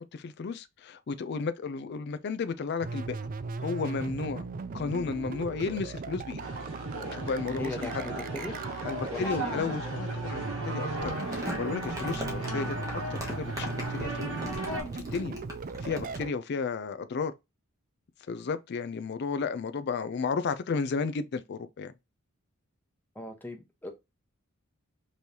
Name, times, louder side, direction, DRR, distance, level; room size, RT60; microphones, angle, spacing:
voice 1, 0.1-3.2 3.6-4.5 4.7-6.4 7.1-8.0 8.8-15.4 15.8-17.3 18.3-21.9, left 5 dB, 50° left, 0.4 m, -33 dB
sound 1, 2.8-16.3, right 4 dB, 40° right, 0.4 m, -38 dB
sound 2, 6.4-14.8, right 1 dB, 80° right, 1.7 m, -37 dB
voice 2, 7.5-8.6 9.1-9.7 23.1-23.9, left 1 dB, 10° left, 0.9 m, -39 dB
Crumpling crinkling, 11.0-16.2, equal, 15° right, 1.2 m, -40 dB
5.3 x 3.1 x 2.7 m
head